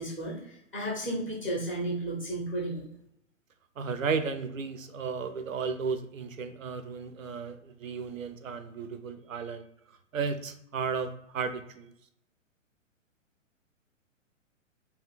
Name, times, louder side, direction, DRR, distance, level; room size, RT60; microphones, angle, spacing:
voice 1, 0.0-2.8, right 1 dB, ahead, -6 dB, 0.5 m, -33 dB
voice 2, 3.8-9.6 10.1-11.9, right 5 dB, 80° right, 10 dB, 0.5 m, -34 dB
3.2 x 2.3 x 3.0 m, 0.75 s
figure-of-eight pair, 115°, 40 cm